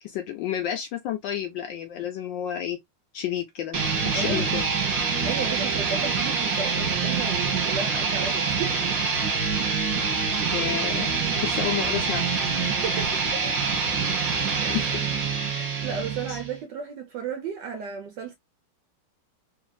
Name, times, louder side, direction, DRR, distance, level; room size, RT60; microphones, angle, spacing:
voice 1, 0.0-2.8 3.1-4.7 10.5-11.1 11.4-12.3 14.7-14.8 16.3-16.4, left 10 dB, 75° left, 1.1 m, -30 dB
sound 1, 3.7-16.6, right 5 dB, 50° right, 1.2 m, -26 dB
voice 2, 4.1-4.5 5.2-8.8 12.6-13.6 14.6-15.0 15.5-18.3, right 6 dB, 70° right, 1.0 m, -34 dB
3.2 x 2.7 x 2.2 m
omnidirectional pair, 2.4 m